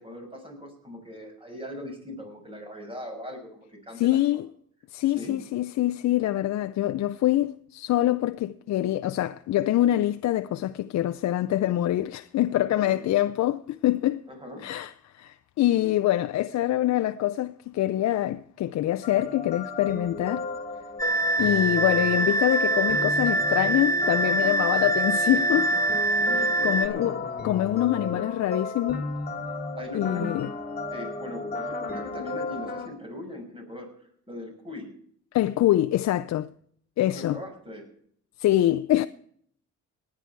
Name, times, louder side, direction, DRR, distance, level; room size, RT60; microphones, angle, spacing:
voice 1, 0.0-4.4 5.1-5.4 12.6-13.0 14.3-14.7 26.2-27.2 29.8-30.4 30.9-33.9 34.3-35.0 37.1-37.9, left 1 dB, 15° right, 5.9 m, -40 dB
voice 2, 3.9-4.5 4.9-14.2 14.6-20.5 21.4-25.7 26.6-27.2 27.4-29.0 29.9-30.5 35.3-36.5 37.0-37.4 38.4-39.1, left 13 dB, 65° left, 0.5 m, -25 dB
sound 1, 19.0-32.9, left 3 dB, 30° left, 2.4 m, -34 dB
sound 2, 21.0-26.9, right 2 dB, 10° left, 1.1 m, -24 dB
19.0 x 9.7 x 4.6 m
cardioid pair, 90°, 30 cm